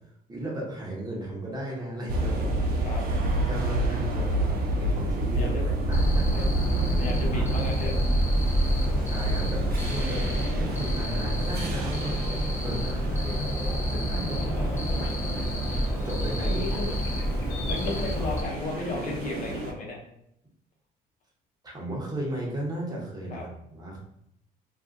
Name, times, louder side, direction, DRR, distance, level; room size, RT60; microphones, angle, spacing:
voice 1, 0.3-2.5 3.5-5.5 5.9-7.6 9.0-14.7 16.0-16.8 21.6-24.0, right 1 dB, 25° right, -3 dB, 1.0 m, -35 dB
sound 1, 2.1-19.7, right 1 dB, 65° right, 0.6 m, -30 dB
voice 2, 5.3-5.6 6.3-6.4 6.9-7.9 12.7-13.5 14.2-15.0 16.4-16.9 17.7-20.0 23.3-23.4, left 2 dB, 50° left, -2 dB, 0.9 m, -35 dB
Cricket, 5.9-18.4, equal, 15° left, 0.5 m, -28 dB
sound 2, 14.2-19.7, left 4 dB, 90° left, 0.5 m, -44 dB
2.5 x 2.3 x 3.7 m, 0.74 s
cardioid pair, 110°, 17 cm